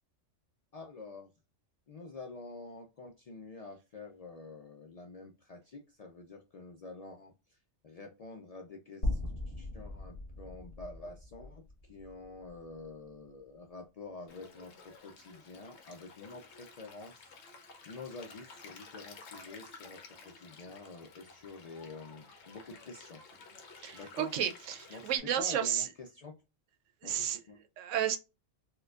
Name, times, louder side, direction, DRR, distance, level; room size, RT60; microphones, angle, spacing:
voice 1, 0.7-1.3 1.9-7.6 7.8-9.2 9.5-17.3 17.9-23.2 23.9-24.3 24.9-26.3 27.0-27.6, left 3 dB, 85° left, 0.3 m, -48 dB
sound 1, 9.0-13.3, left 1 dB, 45° left, 1.7 m, -39 dB
Stream, 14.3-25.2, left 4 dB, 65° left, 1.1 m, -53 dB
voice 2, 23.8-25.9 27.0-27.4 27.8-28.2, right 10 dB, 80° right, 0.9 m, -32 dB
4.4 x 2.3 x 2.3 m
omnidirectional pair, 1.3 m